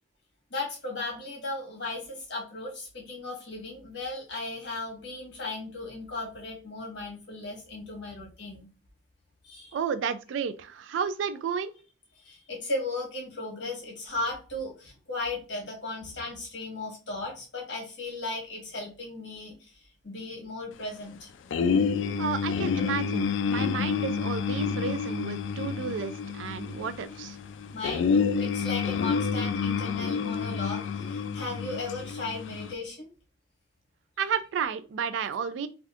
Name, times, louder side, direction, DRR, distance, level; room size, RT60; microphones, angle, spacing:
voice 1, 0.5-8.7 9.4-9.8 12.2-21.6 27.7-33.1, left 2 dB, 70° left, 1.5 m, -36 dB
voice 2, 9.7-11.7 22.2-27.4 34.2-35.7, right 6 dB, 90° right, 0.3 m, -32 dB
sound 1, 21.5-32.7, left 6 dB, 85° left, 0.3 m, -29 dB
3.4 x 2.6 x 2.4 m
head